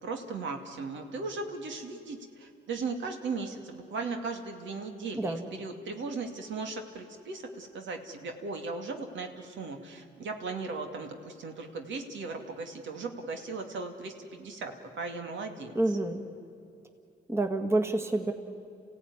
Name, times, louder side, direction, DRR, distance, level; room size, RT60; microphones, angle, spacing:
voice 1, 0.0-2.2 2.7-9.3 9.6-14.7 15.0-15.7, right 4 dB, 70° right, 4 dB, 2.5 m, -37 dB
voice 2, 15.7-16.2 17.3-18.3, right 2 dB, 15° right, 4 dB, 1.9 m, -28 dB
28.5 x 16.5 x 9.8 m, 2.6 s
cardioid pair, 90°, 20 cm